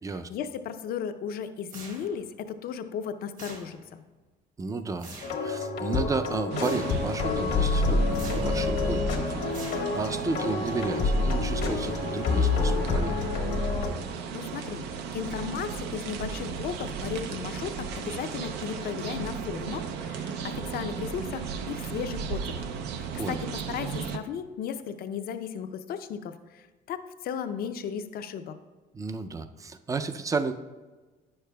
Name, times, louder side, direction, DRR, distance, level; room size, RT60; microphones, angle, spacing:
voice 1, 0.1-4.0 14.3-22.7 23.0-23.4 23.7-28.5, left 7 dB, 65° left, 9 dB, 0.5 m, -35 dB
sound 1, 1.7-2.4 3.4-4.0 5.0-5.5 6.6-7.1 8.1-8.7 9.5-10.2, right 3 dB, 50° right, 1.4 m, -45 dB
voice 2, 4.6-5.1 5.4-13.1 23.2-23.4 28.9-30.5, right 4 dB, 20° right, 10 dB, 0.4 m, -32 dB
sound 2, 5.2-13.9, left 3 dB, 80° left, 1.2 m, -27 dB
sound 3, 6.5-24.2, right 6 dB, 85° right, 0.5 m, -35 dB
9.7 x 6.6 x 2.3 m, 1.3 s
cardioid pair, 110°, 17 cm